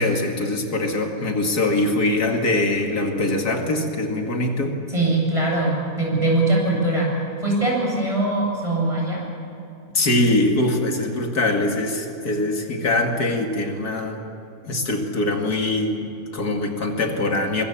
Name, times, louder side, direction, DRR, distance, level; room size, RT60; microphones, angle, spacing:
voice 1, 0.0-4.8 9.9-14.2 14.6-17.7, left 2 dB, 85° left, 2 dB, 2.8 m, -23 dB
voice 2, 4.9-7.1 7.4-9.2, right 2 dB, 20° right, -3 dB, 8.0 m, -21 dB
24.5 x 23.0 x 7.2 m, 2.9 s
omnidirectional pair, 1.6 m